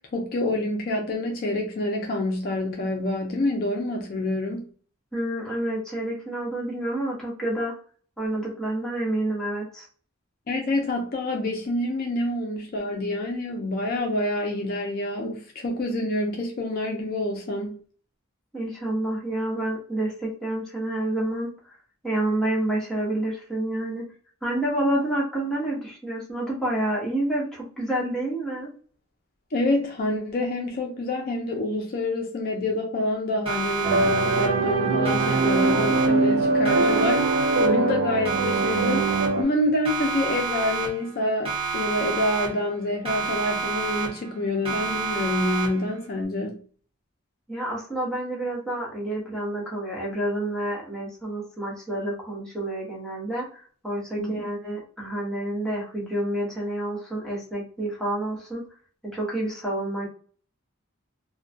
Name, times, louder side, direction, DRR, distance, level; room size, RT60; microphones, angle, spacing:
voice 1, 0.0-4.7 10.5-17.8 29.5-46.6 54.2-54.3, left 1 dB, 45° left, 0.4 m, -27 dB
voice 2, 5.1-7.7 8.2-9.9 18.5-21.8 22.0-24.0 24.4-28.7 47.5-58.6 59.0-60.1, right 1 dB, 5° left, 0.9 m, -28 dB
Siren, 33.5-34.8 35.1-36.4 36.7-38.0 38.3-39.6 39.9-41.2 41.5-42.8 43.1-44.4 44.7-46.0, right 5 dB, 25° right, 0.6 m, -29 dB
sound 1, 33.8-39.4, right 3 dB, 75° right, 0.3 m, -22 dB
2.2 x 2.1 x 2.6 m
head